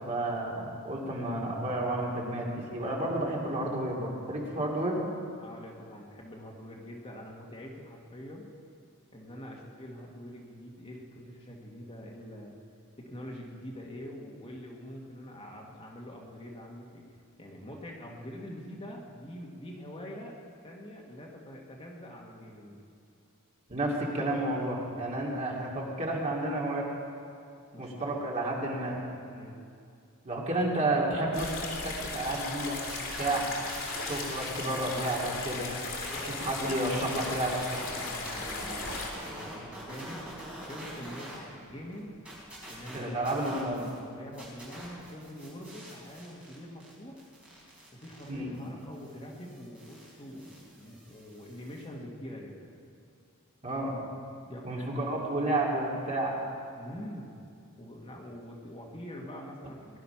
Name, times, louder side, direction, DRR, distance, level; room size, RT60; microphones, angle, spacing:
voice 1, 0.1-5.0 23.7-26.9 27.8-29.0 30.2-31.5 31.8-32.8 33.2-33.5 34.0-35.7 36.2-37.6 42.9-43.9 48.3-48.5 53.6-53.9 54.6-56.4, right 1 dB, 35° right, -3 dB, 2.7 m, -31 dB
voice 2, 5.4-8.5 9.1-12.6 13.0-17.0 17.4-20.3 20.6-22.8 27.7-28.1 29.3-29.6 36.1-36.6 38.1-40.3 40.7-42.2 42.7-43.3 44.1-47.3 47.9-52.7 54.5-54.9 55.4-55.5 56.8-57.3 57.8-60.0, equal, 25° left, -1 dB, 1.7 m, -45 dB
sound 1, 31.3-39.1, left 3 dB, 65° left, 2.9 m, -37 dB
sound 2, 32.7-34.7 34.9-41.4 41.7-44.0 44.3-51.8, right 1 dB, 5° right, 5.1 m, -45 dB
20.0 x 11.5 x 5.8 m, 2.4 s
head